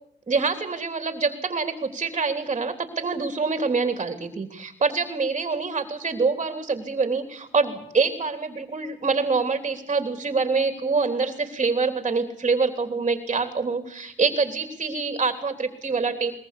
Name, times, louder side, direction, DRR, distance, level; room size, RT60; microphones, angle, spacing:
voice 1, 0.3-16.3, right 4 dB, 30° right, 8 dB, 3.2 m, -25 dB
22.0 x 21.0 x 8.4 m, 0.69 s
cardioid pair, 90°, 20 cm